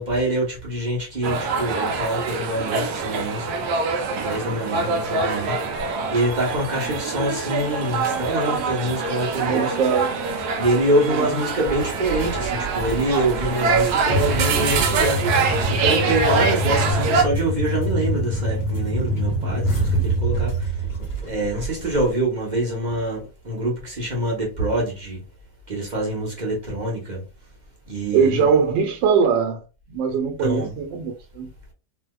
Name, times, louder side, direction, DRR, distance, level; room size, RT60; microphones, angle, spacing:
voice 1, 0.0-3.6 4.2-5.8 6.1-9.9 10.6-15.2 15.7-20.7 21.2-25.2 25.7-27.2 27.9-28.5 30.4-30.7, right 1 dB, 35° right, 0.7 m, -25 dB
sound 1, 1.2-17.2, right 4 dB, 70° right, 1.0 m, -24 dB
voice 2, 9.4-10.2 11.1-11.4 28.1-29.6 29.9-31.5, right 6 dB, 90° right, 1.4 m, -21 dB
sound 2, 11.7-22.1, right 1 dB, 25° left, 1.5 m, -26 dB
3.3 x 2.7 x 2.3 m
omnidirectional pair, 1.9 m